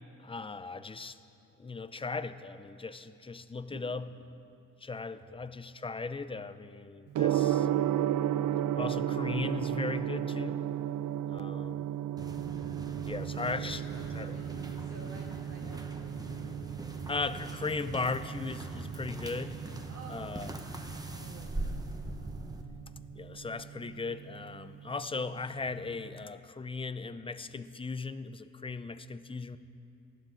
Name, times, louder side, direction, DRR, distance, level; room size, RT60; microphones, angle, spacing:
voice 1, 0.2-1.2 1.6-4.1 4.8-7.7 8.8-10.6 11.3-11.8 13.0-13.8 14.1-14.3 17.1-19.6 20.1-20.5 23.2-29.6, left 4 dB, 15° left, 12 dB, 0.4 m, -37 dB
Gong, 7.1-26.2, right 11 dB, 70° right, 0.5 m, -35 dB
voice 2, 11.4-11.8 13.3-17.4 19.9-21.9, right 2 dB, 45° right, -4 dB, 1.9 m, -52 dB
sound 1, 12.2-22.6, right 1 dB, 10° right, 0.9 m, -42 dB
19.0 x 15.0 x 3.8 m, 2.7 s
wide cardioid pair, 115°, 33 cm